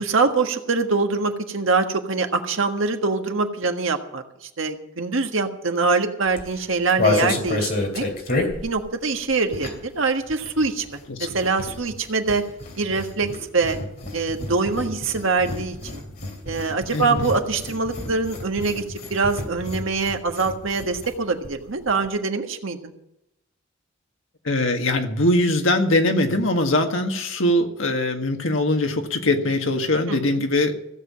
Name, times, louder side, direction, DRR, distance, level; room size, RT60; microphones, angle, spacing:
voice 1, 0.0-8.0 8.5-12.4 12.8-13.8 14.1-16.0 16.4-22.9 30.1-30.5, right 4 dB, 75° right, 5 dB, 1.5 m, -24 dB
sound 1, 6.3-10.0 10.2-21.2 21.4-21.5 21.8-22.1, left 2 dB, 50° left, 3.0 m, -30 dB
voice 2, 16.9-17.3 24.5-30.8, left 1 dB, 75° left, 4 dB, 1.7 m, -22 dB
16.0 x 7.6 x 8.6 m, 0.84 s
head